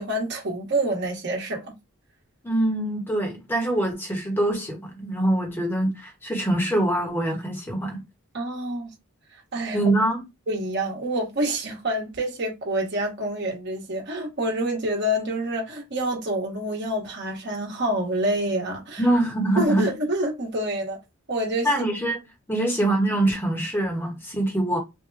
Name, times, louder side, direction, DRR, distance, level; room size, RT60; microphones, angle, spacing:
voice 1, 0.0-1.7 8.3-8.9 9.3-9.8 10.5-19.0 19.6-21.0 21.3-21.9 22.6-22.7, right 1 dB, 50° right, 1.1 m, -27 dB
voice 2, 2.4-8.0 9.7-10.2 19.0-19.9 21.6-22.2 22.5-24.8, right 1 dB, 10° left, 0.9 m, -24 dB
3.5 x 2.1 x 3.3 m
head